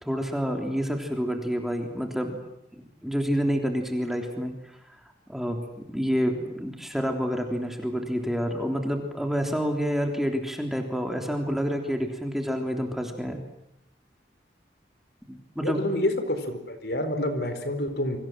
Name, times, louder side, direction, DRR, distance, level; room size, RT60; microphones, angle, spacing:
voice 1, 0.0-2.4 2.8-4.5 5.3-13.4 15.3-15.8, equal, ahead, 3 dB, 3.5 m, -28 dB
voice 2, 15.6-18.2, left 1 dB, 60° left, 9 dB, 4.4 m, -28 dB
29.0 x 25.0 x 7.7 m, 0.80 s
head